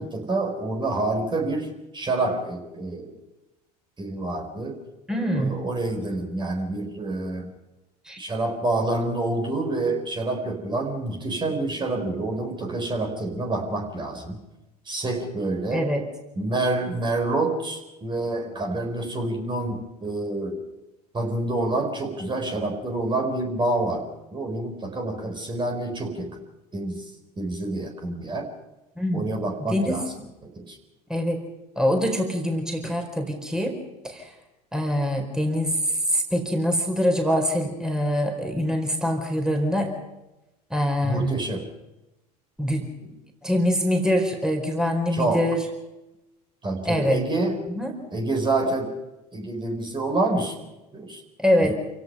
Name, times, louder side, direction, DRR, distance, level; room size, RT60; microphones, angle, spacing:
voice 1, 0.0-3.2 4.0-4.8 5.3-7.5 8.2-14.4 14.9-15.9 16.4-20.6 21.1-26.4 26.7-27.1 27.4-28.5 29.1-30.1 30.4-30.8 41.0-41.7 45.1-45.5 46.6-47.6 48.1-49.0 49.3-50.5 50.9-51.2 51.6-51.7, right 2 dB, 25° right, 3 dB, 4.3 m, -27 dB
voice 2, 5.1-5.5 8.1-8.2 15.7-16.0 29.0-29.3 29.7-30.0 31.1-31.4 31.8-33.8 34.0-34.3 34.7-35.8 36.1-40.0 40.7-41.4 42.6-43.1 43.4-45.6 46.8-47.2 47.7-47.9 51.4-51.7, equal, 5° right, 3 dB, 4.4 m, -24 dB
28.0 x 17.0 x 5.6 m, 1.0 s
hypercardioid pair, 75°, 20 cm